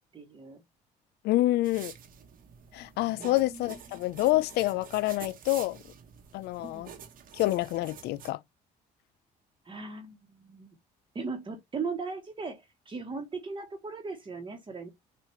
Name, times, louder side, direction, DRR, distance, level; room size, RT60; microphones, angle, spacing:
voice 1, 0.1-0.6 3.1-3.8 6.6-6.9 9.6-10.8 11.1-14.9, right 4 dB, 30° right, 1.1 m, -38 dB
voice 2, 1.2-1.9 2.7-5.8 6.3-6.9 7.3-8.4, left 17 dB, 75° left, 0.4 m, -27 dB
sound 1, 1.6-8.3, right 8 dB, 55° right, 1.0 m, -48 dB
6.6 x 2.5 x 3.1 m
cardioid pair, 110°, 17 cm